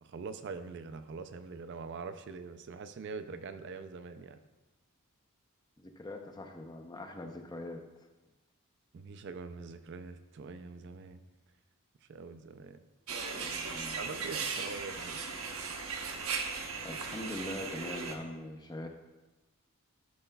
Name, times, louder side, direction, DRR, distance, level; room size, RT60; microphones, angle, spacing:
voice 1, 0.0-4.4 8.9-11.2 12.1-12.8 14.0-15.2, right 4 dB, 55° right, 10 dB, 0.4 m, -43 dB
voice 2, 5.8-7.8 13.4-14.0 16.8-18.9, left 1 dB, 20° left, 4 dB, 0.6 m, -42 dB
sound 1, 13.1-18.2, right 5 dB, 80° right, 0.9 m, -37 dB
12.5 x 5.6 x 2.3 m, 1.1 s
head